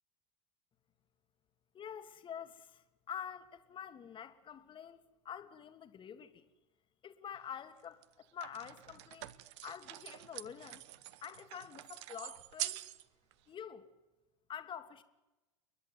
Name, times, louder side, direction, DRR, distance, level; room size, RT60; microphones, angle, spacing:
voice 1, 1.7-6.5 7.0-9.3 9.6-10.8 11.2-12.9 13.5-13.9 14.5-15.0, left 8 dB, 30° left, 1.8 m, -47 dB
sound 1, 7.3-7.4 8.0-13.0 13.3-13.4, right 15 dB, 65° right, 1.0 m, -45 dB
29.0 x 11.0 x 9.5 m
hypercardioid pair, 85°, 16 cm